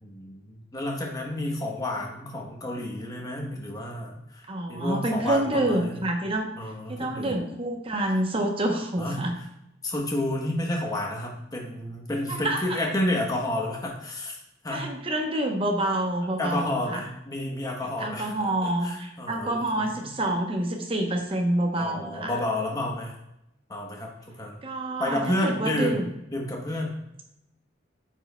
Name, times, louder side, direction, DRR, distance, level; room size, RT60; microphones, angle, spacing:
voice 1, 0.0-6.0 6.6-7.4 9.0-9.2 9.8-14.8 16.4-18.3 18.6-19.8 21.8-23.1 23.7-24.6 25.0-26.0 26.3-26.9, left 1 dB, 20° left, 0 dB, 1.0 m, -30 dB
voice 2, 4.5-6.5 6.9-9.3 12.3-12.9 14.7-17.0 18.0-22.3 24.6-26.1, right 1 dB, 30° right, 3 dB, 0.8 m, -27 dB
9.1 x 4.6 x 2.2 m, 0.83 s
head